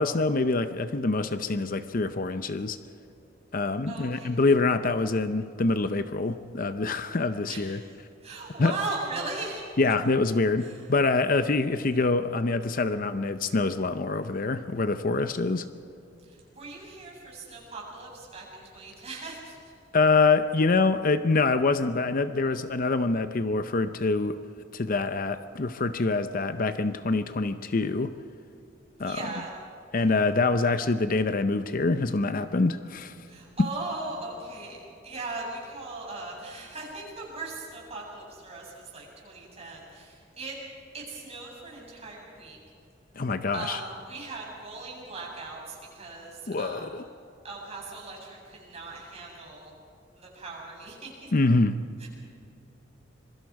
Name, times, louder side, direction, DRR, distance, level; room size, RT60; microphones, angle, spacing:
voice 1, 0.0-2.8 3.5-7.8 8.6-8.7 9.8-15.7 19.9-24.4 24.7-28.1 29.0-29.2 29.9-33.1 33.6-33.7 43.2-43.8 46.5-47.0 51.3-51.8, left 3 dB, 50° left, 10 dB, 0.7 m, -25 dB
voice 2, 3.9-4.3 7.5-7.7 8.2-9.6 10.6-10.8 16.2-19.6 29.0-29.5 33.3-40.5 40.9-42.6 43.5-47.0 47.4-49.7 50.2-51.3 52.0-52.1, right 3 dB, 35° right, -3 dB, 7.4 m, -39 dB
26.0 x 23.5 x 4.8 m, 2.7 s
head